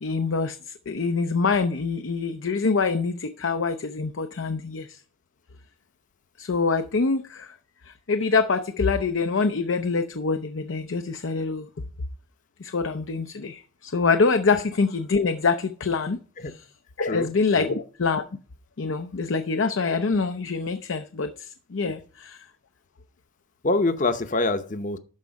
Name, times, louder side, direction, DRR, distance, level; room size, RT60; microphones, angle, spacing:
voice 1, 0.0-5.0 6.4-7.5 7.9-11.7 12.6-16.2 17.0-18.2 18.8-22.5, left 4 dB, 70° left, 0.6 m, -25 dB
voice 2, 17.0-17.7 23.6-25.0, left 2 dB, 40° left, 0.8 m, -26 dB
12.0 x 4.7 x 5.2 m
head